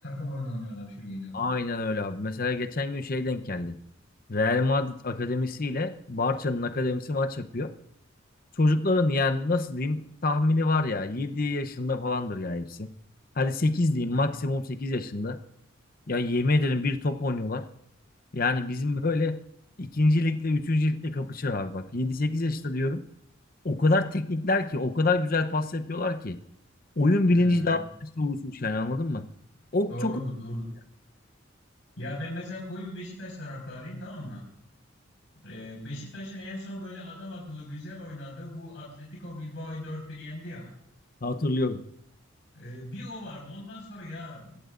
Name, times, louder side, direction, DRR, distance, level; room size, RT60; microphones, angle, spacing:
voice 1, 0.0-1.4 14.0-14.3 27.3-27.8 29.9-30.6 32.0-34.4 35.4-40.7 42.5-44.6, left 1 dB, 90° left, -4 dB, 4.8 m, -38 dB
voice 2, 1.3-3.7 4.3-7.7 8.6-12.9 13.4-15.4 16.1-17.6 18.3-19.4 19.8-23.0 23.6-26.4 27.0-29.3 29.7-30.1 41.2-41.8, left 2 dB, 50° left, 8 dB, 0.8 m, -26 dB
25.5 x 14.5 x 2.6 m, 0.77 s
head